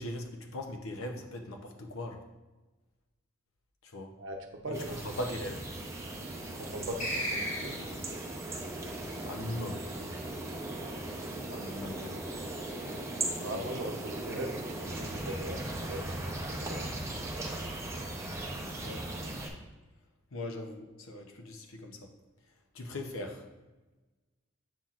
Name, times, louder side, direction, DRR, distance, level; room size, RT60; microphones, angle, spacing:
voice 1, 0.0-2.2 3.8-4.1 4.7-5.6 9.3-9.8 11.5-12.2 13.1-13.7 18.8-19.1 20.3-22.1 22.7-23.4, left 1 dB, 75° left, 4 dB, 0.8 m, -40 dB
voice 2, 4.6-5.0 6.5-7.8 13.4-14.5 14.9-16.3 16.6-16.9, right 1 dB, 60° right, 3 dB, 0.8 m, -39 dB
sound 1, 4.7-19.5, right 1 dB, 15° right, 0.7 m, -38 dB
sound 2, 7.0-8.2, equal, 35° left, 1.6 m, -34 dB
7.4 x 5.8 x 2.5 m, 1.1 s
head